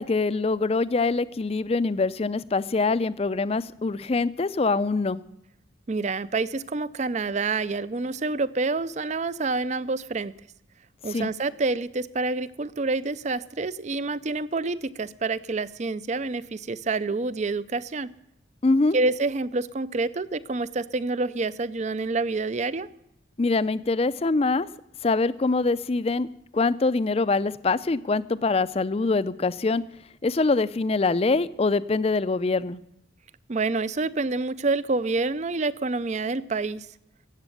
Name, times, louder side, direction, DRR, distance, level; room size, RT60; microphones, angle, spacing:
voice 1, 0.0-5.2 11.1-11.3 18.6-19.0 23.4-24.7 25.0-26.3 26.5-29.8 30.2-32.8, left 3 dB, 30° left, 16 dB, 0.4 m, -24 dB
voice 2, 5.9-10.3 11.0-18.1 18.9-22.9 33.5-36.9, right 3 dB, 40° right, 17 dB, 0.5 m, -27 dB
15.0 x 8.1 x 9.2 m, 0.80 s
head